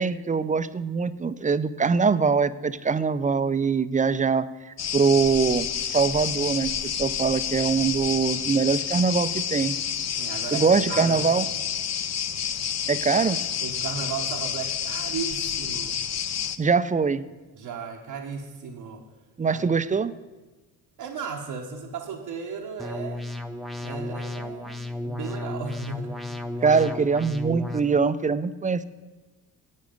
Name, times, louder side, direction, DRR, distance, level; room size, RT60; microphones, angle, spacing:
voice 1, 0.0-4.5 4.9-9.8 10.5-11.5 12.9-13.4 16.6-17.2 19.4-20.1 26.6-28.8, right 5 dB, 20° right, 14 dB, 0.4 m, -23 dB
sound 1, 4.8-16.6, left 8 dB, 45° left, 0.6 m, -29 dB
voice 2, 10.2-11.3 13.1-13.2 13.6-15.9 17.5-19.0 19.5-19.7 21.0-23.3 23.8-26.1 26.6-26.8, right 6 dB, 80° right, -3 dB, 1.1 m, -35 dB
sound 2, 22.8-27.8, left 1 dB, ahead, 0.7 m, -34 dB
10.5 x 8.3 x 5.1 m, 1.2 s
cardioid pair, 70°, 38 cm